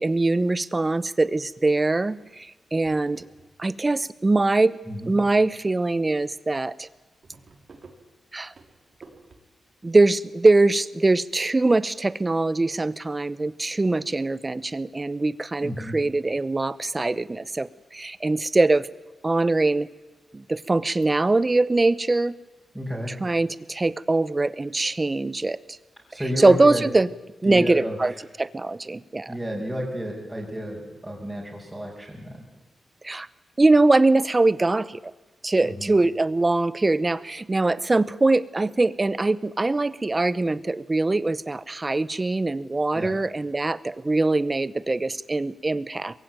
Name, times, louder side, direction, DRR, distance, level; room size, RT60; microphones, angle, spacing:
voice 1, 0.0-3.2 3.6-4.8 5.1-6.9 8.3-8.5 9.8-18.9 19.2-19.9 20.3-22.3 23.2-25.8 26.4-27.1 27.4-28.1 28.4-29.3 33.0-33.3 33.6-35.0 35.4-46.2, right 2 dB, 25° right, 18 dB, 0.8 m, -22 dB
sound 1, 2.3-2.4 2.7-4.0 4.3-4.9 5.5-5.6 5.9-6.0 6.3-6.4 6.7-9.4, right 3 dB, 60° right, 4.0 m, -51 dB
voice 2, 15.6-16.0 22.7-23.1 26.1-26.9 27.4-28.0 29.3-32.4 35.6-35.9 42.9-43.1, equal, 10° right, -6 dB, 5.7 m, -31 dB
22.0 x 16.0 x 9.3 m, 1.1 s
cardioid pair, 80°, 0 cm